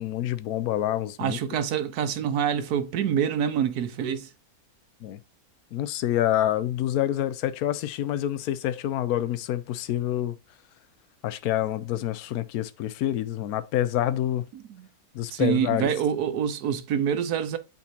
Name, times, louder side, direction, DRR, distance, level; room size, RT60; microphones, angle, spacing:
voice 1, 0.0-1.4 5.0-5.2 5.7-10.4 11.2-14.4 15.1-15.9, left 12 dB, 80° left, 1.1 m, -27 dB
voice 2, 1.2-4.3 14.5-14.9 15.3-17.6, right 8 dB, 85° right, 1.3 m, -26 dB
8.4 x 4.2 x 2.8 m
omnidirectional pair, 1.6 m